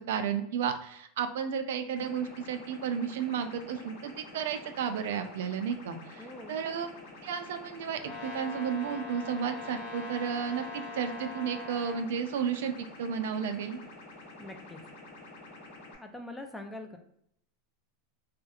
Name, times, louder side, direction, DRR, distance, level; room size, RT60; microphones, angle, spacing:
voice 1, 0.1-6.9 7.2-13.8, right 7 dB, 80° right, 7 dB, 0.3 m, -33 dB
sound 1, 1.9-15.9, left 2 dB, 80° left, 0.8 m, -49 dB
voice 2, 6.2-6.6 14.4-14.8 16.0-17.0, left 1 dB, 10° left, 5 dB, 0.3 m, -43 dB
Brass instrument, 8.0-12.1, left 3 dB, 40° left, 1.0 m, -42 dB
2.8 x 2.4 x 2.3 m, 0.71 s
supercardioid pair, 140°, 0 cm